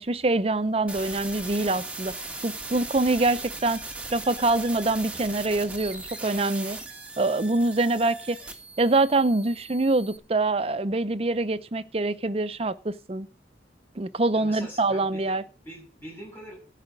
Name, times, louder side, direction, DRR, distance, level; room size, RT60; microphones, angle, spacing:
voice 1, 0.0-2.1 2.4-3.8 4.1-6.8 7.2-8.4 8.8-13.3 14.0-15.4, right 2 dB, 35° right, 0.6 m, -25 dB
sound 1, 0.9-10.2, right 3 dB, 5° right, 1.4 m, -38 dB
voice 2, 14.3-16.5, equal, 10° left, 7.2 m, -43 dB
13.5 x 4.9 x 8.4 m
head